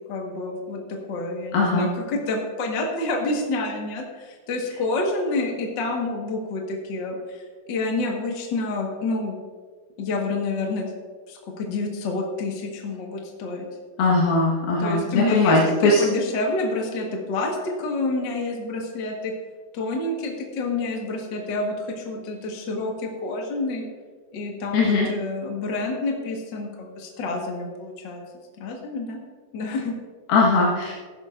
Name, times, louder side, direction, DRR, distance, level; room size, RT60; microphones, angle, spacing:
voice 1, 0.1-9.4 10.0-10.9 11.3-13.6 14.8-19.3 19.7-23.8 24.3-28.2 28.6-29.2 29.5-29.9, left 2 dB, 55° left, 0 dB, 1.3 m, -28 dB
voice 2, 1.5-1.9 14.0-16.0 24.7-25.1 30.3-30.9, left 3 dB, 80° left, -4 dB, 3.3 m, -19 dB
15.5 x 12.5 x 2.5 m, 1.5 s
omnidirectional pair, 4.2 m